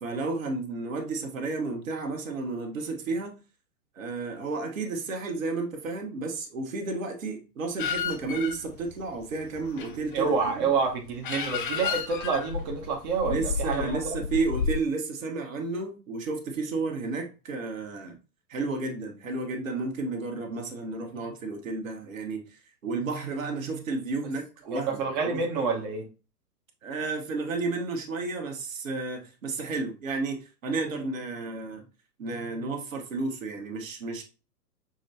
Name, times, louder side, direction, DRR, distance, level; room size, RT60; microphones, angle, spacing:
voice 1, 0.0-3.4 3.9-10.7 13.3-18.2 18.5-22.5 22.8-25.4 26.8-31.8 32.2-34.2, right 3 dB, 55° right, 1.4 m, -32 dB
sound 1, 7.8-14.8, left 6 dB, 35° left, 0.7 m, -33 dB
voice 2, 10.1-13.9 24.7-26.0, right 5 dB, 25° right, 0.9 m, -28 dB
6.3 x 3.1 x 2.7 m
figure-of-eight pair, 115°, 48 cm